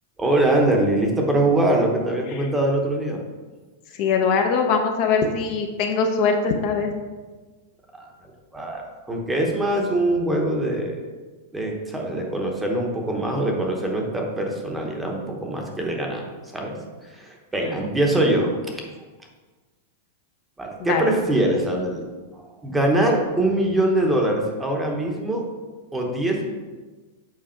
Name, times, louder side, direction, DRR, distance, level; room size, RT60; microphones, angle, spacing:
voice 1, 0.2-3.2 7.9-8.1 8.5-11.0 11.5-16.2 16.5-18.8 20.6-22.0 22.3-25.4 25.9-26.5, right 1 dB, 5° right, 0 dB, 1.0 m, -23 dB
voice 2, 3.9-6.9 17.6-17.7 20.9-21.1, left 5 dB, 40° left, 3 dB, 0.8 m, -22 dB
7.7 x 4.8 x 4.4 m, 1.3 s
supercardioid pair, 155°, 0 cm